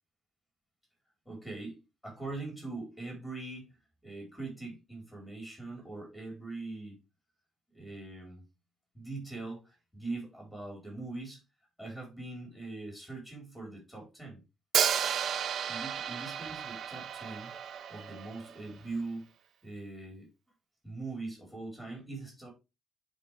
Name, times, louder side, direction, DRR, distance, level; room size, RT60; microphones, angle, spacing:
voice 1, 1.2-3.7 4.0-7.0 7.7-8.4 8.9-11.4 11.8-14.4 15.5-17.5 17.9-19.3 19.6-20.3 20.8-22.5, right 3 dB, ahead, -1 dB, 4.5 m, -42 dB
Hi-hat, 14.7-18.7, right 8 dB, 65° right, 0.5 m, -33 dB
10.0 x 4.8 x 3.5 m, 0.26 s
cardioid pair, 95°, 0 cm